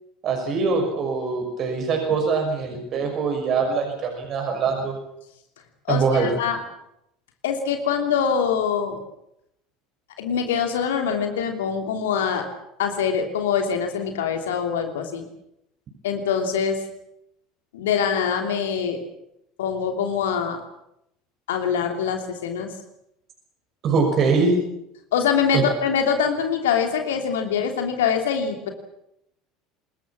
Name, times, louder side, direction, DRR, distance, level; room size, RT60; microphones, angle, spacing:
voice 1, 0.2-5.0 5.9-6.3 23.8-24.5 25.5-25.6, right 4 dB, 40° right, 3 dB, 6.0 m, -23 dB
voice 2, 5.9-6.6 7.4-9.0 10.2-12.5 12.8-15.3 16.0-16.8 17.7-19.0 19.6-20.6 21.5-22.7 25.1-28.7, left 7 dB, 65° left, 4 dB, 3.0 m, -24 dB
25.5 x 21.5 x 7.3 m, 0.81 s
figure-of-eight pair, 70°, 0 cm